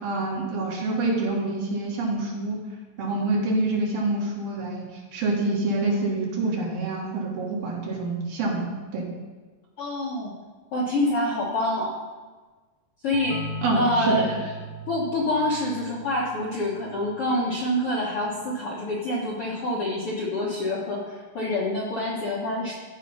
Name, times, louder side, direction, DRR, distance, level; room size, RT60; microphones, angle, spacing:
voice 1, 0.0-2.6 3.0-9.1 13.6-14.1, right 2 dB, 70° right, -2 dB, 3.5 m, -26 dB
voice 2, 9.8-10.3 10.7-11.9 13.0-13.5 13.7-14.4 14.9-22.7, left 1 dB, 60° left, -4 dB, 1.5 m, -26 dB
sound 1, 13.1-18.6, left 1 dB, 80° left, 2.8 m, -39 dB
14.5 x 5.1 x 5.5 m, 1.3 s
omnidirectional pair, 4.3 m